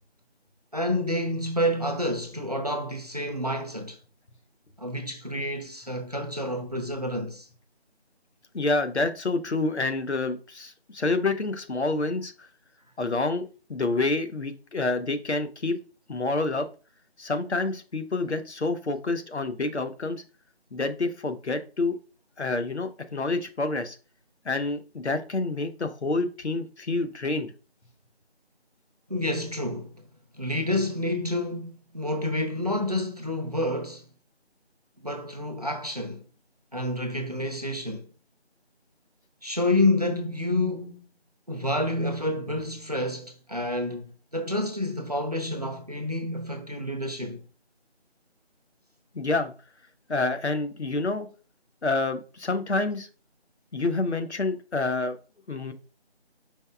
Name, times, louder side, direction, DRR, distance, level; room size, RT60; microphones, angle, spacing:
voice 1, 0.7-4.0 4.8-7.5 29.1-30.1 30.3-34.1 35.0-36.2 36.7-38.1 39.4-41.0 41.5-47.4, left 1 dB, 35° right, 0.6 m, -29 dB
voice 2, 8.5-12.5 13.0-13.4 13.7-15.8 16.1-16.7 17.2-20.2 20.7-21.9 22.4-24.0 24.4-27.5 49.1-49.5 50.1-51.3 51.8-53.1 53.7-55.2 55.5-55.7, left 3 dB, 85° left, 1.0 m, -28 dB
5.4 x 4.3 x 2.3 m
figure-of-eight pair, 175°, 33 cm